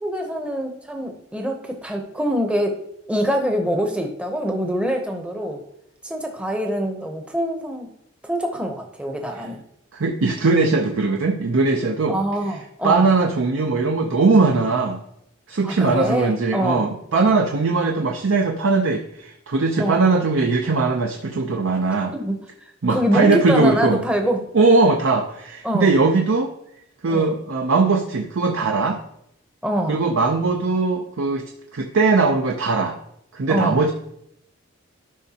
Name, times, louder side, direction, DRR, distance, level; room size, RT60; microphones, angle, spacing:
voice 1, 0.0-5.6 6.0-7.9 8.2-9.6 12.1-13.1 15.6-16.9 19.8-20.0 22.1-22.4 22.9-24.4 25.6-26.0 27.1-27.4 29.6-30.1 33.5-33.9, equal, 5° right, 3 dB, 0.7 m, -24 dB
voice 2, 10.0-12.2 12.8-15.0 15.5-22.1 22.8-24.0 24.5-26.5 27.0-29.0 29.9-33.0 33.3-33.9, right 3 dB, 70° right, 2 dB, 0.6 m, -20 dB
12.0 x 5.3 x 2.8 m, 0.75 s
head